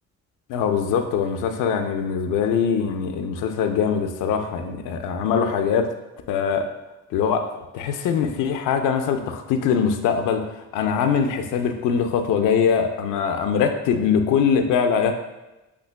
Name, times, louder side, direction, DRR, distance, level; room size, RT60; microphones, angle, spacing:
voice 1, 0.5-5.9 6.3-6.7 7.1-7.4 7.7-10.5 10.7-15.1, left 7 dB, 85° left, 6 dB, 0.6 m, -22 dB
8.3 x 2.8 x 2.3 m, 1.0 s
cardioid pair, 90°, 30 cm